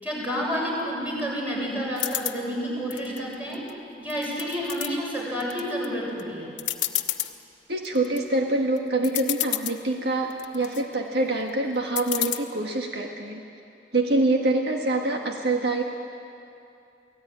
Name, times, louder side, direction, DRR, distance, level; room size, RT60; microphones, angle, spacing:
voice 1, 0.0-3.6 4.0-6.5, equal, 10° right, -4 dB, 7.5 m, -29 dB
sound 1, 2.0-2.4 2.9-3.7 4.1-4.9 5.4-5.9 6.2-6.3 6.6-7.3 7.8-8.2 8.8-8.9 9.0-9.8 10.3-10.8 12.0-12.4, left 14 dB, 85° left, 1.2 m, -29 dB
voice 2, 7.7-13.4 13.9-15.8, right 2 dB, 60° right, 1 dB, 1.7 m, -25 dB
28.5 x 18.0 x 9.9 m, 2.6 s
head